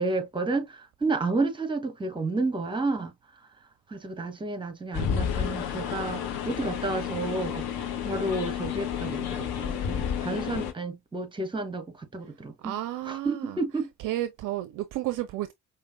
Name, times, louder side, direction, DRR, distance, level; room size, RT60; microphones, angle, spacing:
voice 1, 0.0-3.1 3.9-12.7 13.1-13.9, right 3 dB, 10° right, 0.8 m, -31 dB
sound 1, 4.9-10.7, left 8 dB, 50° left, 0.9 m, -31 dB
voice 2, 12.6-13.6 14.0-15.5, right 14 dB, 45° right, 0.5 m, -32 dB
4.9 x 2.1 x 2.4 m
figure-of-eight pair, 45°, 46 cm